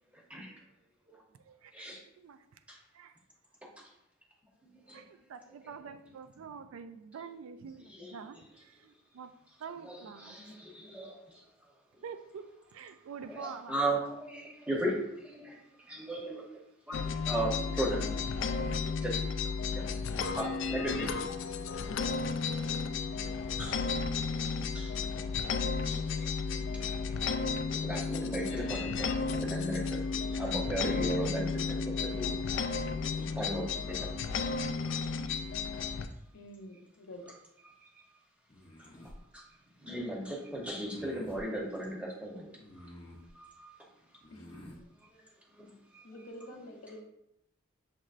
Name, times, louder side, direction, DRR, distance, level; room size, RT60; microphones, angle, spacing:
voice 1, 0.1-0.5 1.1-1.2 1.7-2.0 2.7-2.8 4.9-5.0 7.9-8.1 9.8-11.4 13.2-16.4 16.9-18.1 18.5-19.2 19.4-19.8 20.3-21.1 23.6-23.9 24.7-25.0 25.9-27.0 27.8-32.4 33.2-34.2 34.5-34.6 34.8-35.0 37.6-38.0 38.8-39.4 39.8-42.9 43.3-43.7 45.6-46.3, right 1 dB, 5° right, -2 dB, 0.8 m, -37 dB
voice 2, 1.3-2.6 2.9-3.2 4.9-9.3 9.6-10.5 12.0-13.9 16.9-17.1, right 6 dB, 75° right, 11 dB, 0.3 m, -47 dB
voice 3, 10.4-10.9 36.3-37.2 44.3-44.4 46.0-47.0, equal, 80° left, 3 dB, 0.7 m, -48 dB
sound 1, 16.9-36.1, left 5 dB, 60° left, 0.3 m, -33 dB
sound 2, 38.5-39.2 40.8-41.4 42.6-43.3 44.2-44.8, left 1 dB, 25° left, 0.6 m, -50 dB
6.5 x 3.0 x 2.5 m, 0.81 s
head